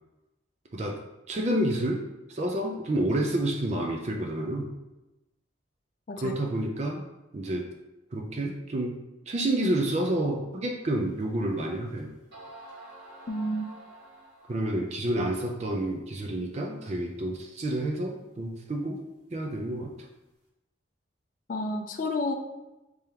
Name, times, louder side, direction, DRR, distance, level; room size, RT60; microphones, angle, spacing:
voice 1, 1.3-2.0 2.3-4.7 6.2-7.0 7.3-7.7 8.1-9.0 9.3-12.1 14.5-19.0 19.3-19.9, right 1 dB, 35° right, 1 dB, 0.4 m, -29 dB
sound 1, 11.2-11.3 12.0-12.1 12.3-14.8, right 1 dB, 60° right, 1.3 m, -47 dB
voice 2, 13.3-13.7 21.5-22.3, left 1 dB, 45° left, 4 dB, 0.4 m, -30 dB
3.6 x 3.4 x 2.8 m, 1.0 s
head